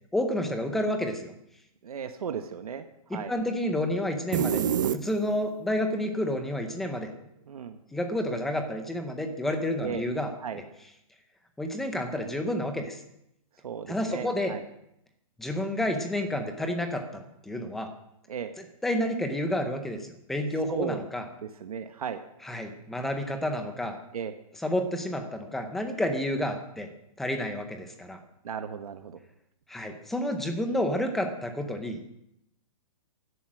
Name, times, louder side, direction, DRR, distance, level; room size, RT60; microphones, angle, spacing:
voice 1, 0.1-1.3 3.1-4.6 4.9-7.1 7.9-10.6 11.6-13.0 13.9-14.6 15.4-17.9 18.6-21.3 22.4-24.0 24.5-26.9 27.2-28.2 29.7-32.0, left 1 dB, ahead, 5 dB, 0.7 m, -30 dB
voice 2, 1.8-2.8 3.1-3.3 7.5-7.8 9.8-10.1 10.4-10.6 13.6-14.6 18.3-18.5 20.7-21.0 21.6-22.2 24.1-24.3 28.4-29.2, right 7 dB, 75° right, 7 dB, 1.3 m, -35 dB
sound 1, 4.3-5.6, right 8 dB, 30° right, 0.5 m, -26 dB
16.0 x 11.5 x 6.2 m, 0.80 s
hypercardioid pair, 180°, 19 cm